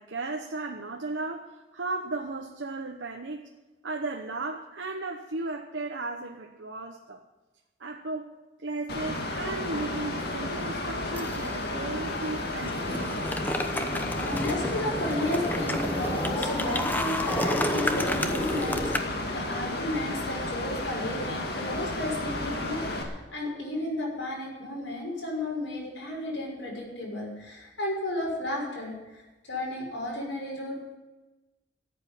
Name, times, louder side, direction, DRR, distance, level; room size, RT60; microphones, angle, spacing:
voice 1, 0.0-3.4 3.8-7.2 7.8-8.3 8.6-13.3, right 2 dB, 80° right, 2 dB, 1.1 m, -35 dB
Mechanical fan, 8.9-23.0, left 2 dB, 60° left, 2.1 m, -33 dB
sound 1, 11.1-11.6 12.0-19.0, left 1 dB, 10° left, 0.8 m, -31 dB
voice 2, 14.2-30.8, left 1 dB, 80° left, -3 dB, 6.0 m, -33 dB
14.0 x 8.2 x 9.9 m, 1.1 s
head